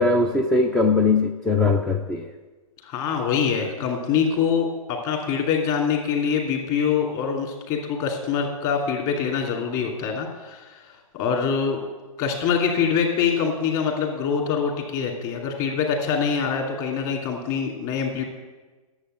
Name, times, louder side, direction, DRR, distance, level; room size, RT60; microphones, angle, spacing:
voice 1, 0.0-2.3, left 3 dB, 5° left, 4 dB, 0.3 m, -20 dB
voice 2, 2.8-10.9 11.1-11.9 12.2-18.2, left 6 dB, 35° left, 2 dB, 2.6 m, -24 dB
11.5 x 7.5 x 7.6 m, 1.3 s
hypercardioid pair, 140°, 19 cm